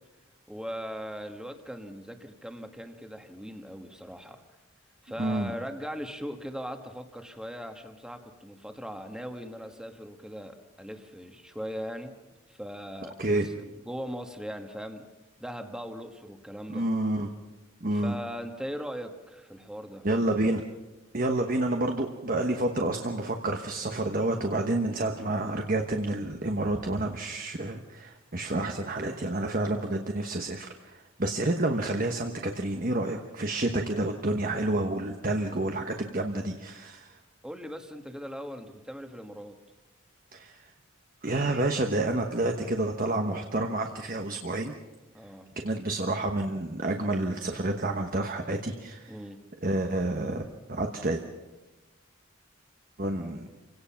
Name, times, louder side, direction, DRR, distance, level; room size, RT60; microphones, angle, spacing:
voice 1, 0.5-4.4 5.0-12.1 12.5-13.5 13.8-15.0 15.4-16.9 17.9-20.0 37.4-39.6 45.1-45.5 49.1-49.4, equal, 5° right, 5 dB, 1.5 m, -39 dB
voice 2, 5.2-5.5 13.2-13.5 16.7-17.3 17.8-18.2 20.0-20.6 21.1-37.2 40.3-40.6 41.2-44.8 45.6-49.2 49.6-50.4 50.7-51.2 53.0-53.5, right 2 dB, 40° right, 4 dB, 1.1 m, -29 dB
28.5 x 17.5 x 5.8 m, 1.1 s
head